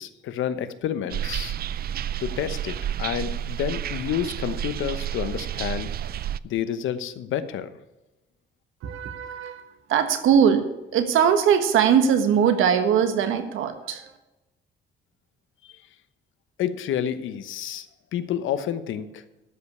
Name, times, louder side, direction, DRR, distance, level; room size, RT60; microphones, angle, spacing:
voice 1, 0.0-1.5 2.2-5.9 6.4-7.7 16.6-17.9 18.1-19.2, left 9 dB, 80° left, 12 dB, 1.0 m, -29 dB
sound 1, 1.1-6.4, right 10 dB, 50° right, 0.4 m, -30 dB
voice 2, 8.8-10.7 10.9-14.1, right 8 dB, 85° right, 8 dB, 1.4 m, -21 dB
13.0 x 5.4 x 8.4 m, 1.0 s
cardioid pair, 90°, 20 cm